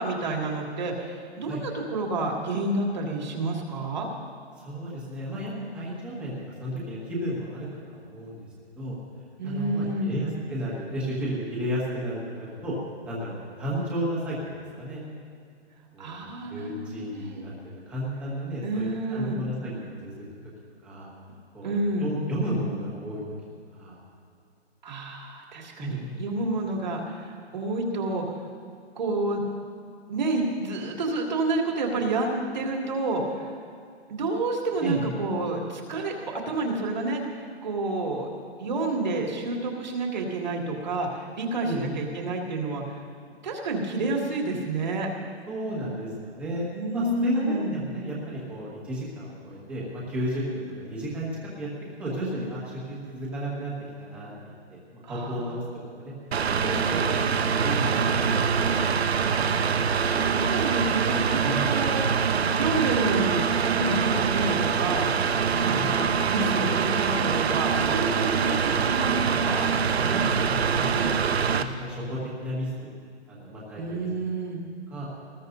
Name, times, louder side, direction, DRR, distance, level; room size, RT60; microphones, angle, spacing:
voice 1, 0.0-4.1 9.4-10.2 16.0-17.4 18.6-19.4 21.6-22.1 24.8-28.2 29.0-29.4 30.1-33.5 34.1-37.2 37.6-38.3 38.6-43.0 43.4-45.1 46.7-47.7 55.0-55.6 59.4-59.5 60.0-65.1 65.5-69.6 73.8-74.6, right 2 dB, 40° right, -1 dB, 2.5 m, -29 dB
voice 2, 4.6-6.3 6.6-8.5 8.8-9.0 9.4-12.7 13.0-15.0 15.9-20.2 20.8-21.1 21.5-21.7 22.0-23.2 23.7-24.0 25.8-26.2 34.8-35.1 41.6-41.9 45.5-46.7 46.9-51.3 51.6-51.7 52.0-53.7 54.0-54.8 55.1-55.6 55.9-56.1 56.5-58.8 61.4-61.7 65.6-65.9 70.0-72.9 73.3-74.1 74.9-75.1, right 1 dB, 5° right, -6 dB, 1.6 m, -33 dB
Mechanical fan, 56.3-71.6, right 6 dB, 70° right, 0.9 m, -24 dB
20.5 x 20.0 x 2.7 m, 2.3 s
hypercardioid pair, 180°, 33 cm